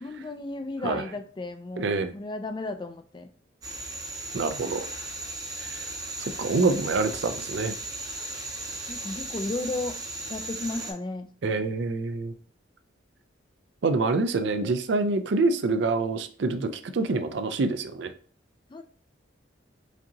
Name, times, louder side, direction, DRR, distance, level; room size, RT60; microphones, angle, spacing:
voice 1, 0.0-3.3 8.9-9.9 10.3-11.3 14.6-14.7 18.7-18.8, left 2 dB, 25° left, 8 dB, 0.3 m, -34 dB
voice 2, 1.8-2.1 4.3-4.9 5.6-5.8 6.2-7.7 11.4-12.3 13.8-18.1, right 3 dB, 65° right, 9 dB, 0.4 m, -26 dB
sound 1, 3.6-10.9, right 2 dB, 20° right, 0.6 m, -36 dB
5.0 x 2.8 x 2.7 m, 0.43 s
head